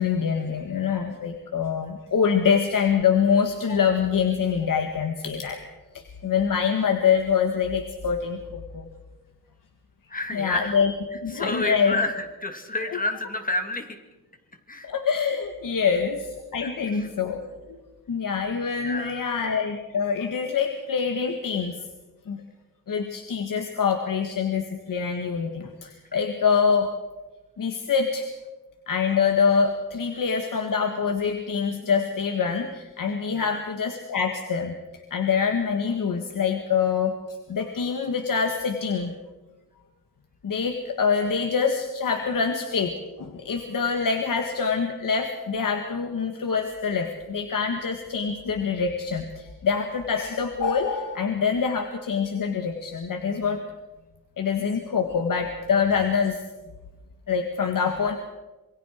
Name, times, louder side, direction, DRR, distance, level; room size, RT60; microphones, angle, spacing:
voice 1, 0.0-5.6 5.9-8.9 10.3-10.9 11.2-12.0 14.9-17.4 17.7-17.8 18.1-21.8 22.3-22.4 22.9-26.9 27.6-28.3 28.9-34.8 35.1-37.2 37.5-39.1 40.4-42.9 43.2-53.6 54.4-56.4 57.3-58.2, left 6 dB, 65° left, 5 dB, 1.8 m, -25 dB
voice 2, 10.1-10.7 11.3-13.9 14.7-14.9 16.6-16.7 17.0-17.1 18.8-19.4 30.1-30.2 33.3-33.6, left 2 dB, 25° left, 6 dB, 2.5 m, -30 dB
26.5 x 23.5 x 4.6 m, 1.1 s
wide cardioid pair, 130°, 35 cm